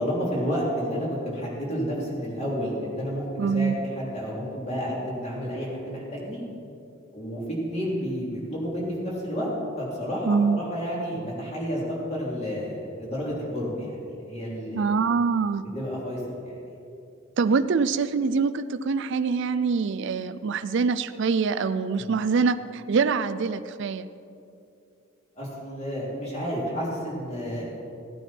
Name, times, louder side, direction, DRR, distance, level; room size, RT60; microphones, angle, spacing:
voice 1, 0.0-6.4 7.1-14.8 15.7-16.5 22.0-22.1 25.4-27.7, equal, 30° left, -5 dB, 3.2 m, -31 dB
voice 2, 3.4-3.8 10.3-10.6 14.7-15.6 17.4-24.1, right 5 dB, 60° right, 12 dB, 0.4 m, -24 dB
16.5 x 9.0 x 4.4 m, 2.6 s
head